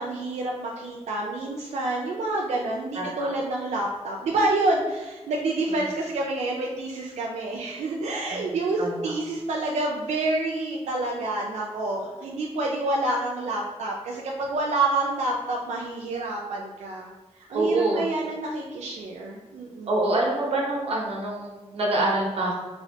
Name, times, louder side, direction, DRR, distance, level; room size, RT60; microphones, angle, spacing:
voice 1, 0.0-17.1 17.5-20.0, right 2 dB, 85° right, -2 dB, 0.4 m, -28 dB
voice 2, 2.9-3.3 5.7-5.8 8.3-8.4 8.8-9.1 17.5-18.0 19.9-22.5, right 2 dB, 55° right, -2 dB, 0.8 m, -26 dB
3.1 x 2.8 x 2.7 m, 1.2 s
wide cardioid pair, 130°, 12 cm